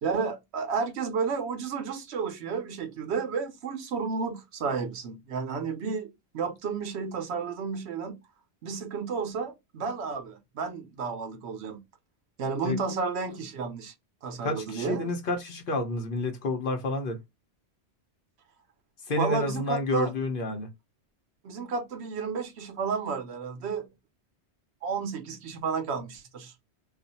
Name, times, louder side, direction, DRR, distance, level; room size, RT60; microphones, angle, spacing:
voice 1, 0.0-8.2 8.6-11.8 12.4-13.9 14.2-15.1 19.2-20.1 21.4-23.9 24.8-26.5, right 5 dB, 75° right, 0.9 m, -32 dB
voice 2, 14.4-17.2 19.1-20.7, left 2 dB, 55° left, 0.9 m, -29 dB
2.4 x 2.3 x 4.0 m
omnidirectional pair, 1.1 m